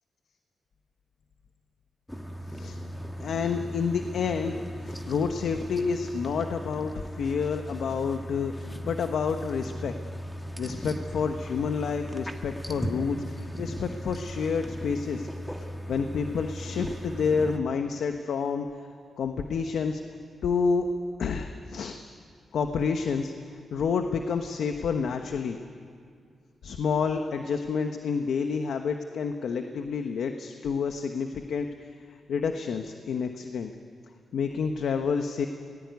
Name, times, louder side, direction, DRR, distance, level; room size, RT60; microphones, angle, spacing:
sound 1, 2.1-17.6, equal, 5° left, 1.8 m, -37 dB
voice 1, 2.5-2.8 3.2-9.9 10.6-15.3 15.6-18.7 19.2-20.0 20.4-20.9 21.2-22.0 22.5-23.3 23.7-25.6 26.6-31.7 32.3-33.7 34.3-35.5, left 5 dB, 80° left, 6 dB, 1.2 m, -29 dB
26.5 x 19.0 x 9.5 m, 2.2 s
cardioid pair, 95°, 0 cm